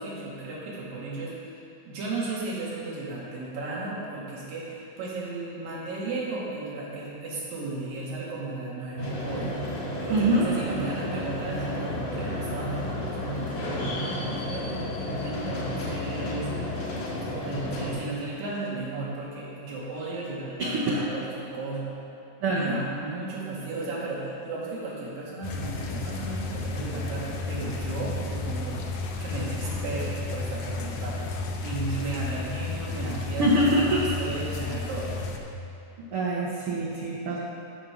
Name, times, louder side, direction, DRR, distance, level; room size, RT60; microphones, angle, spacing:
voice 1, 0.0-1.3 1.9-14.7 15.2-16.5 17.2-21.9 22.5-28.8 29.2-31.3 31.6-35.4, right 3 dB, 90° right, -6 dB, 3.8 m, -35 dB
sound 1, 9.0-17.9, left 1 dB, 65° left, 3.1 m, -32 dB
voice 2, 10.1-10.5 20.6-21.0 22.4-22.8 33.4-34.0 36.1-37.4, right 1 dB, 65° right, -5 dB, 1.4 m, -24 dB
sound 2, 25.4-35.4, left 3 dB, 80° left, 1.4 m, -32 dB
12.5 x 5.2 x 5.9 m, 2.8 s
omnidirectional pair, 3.9 m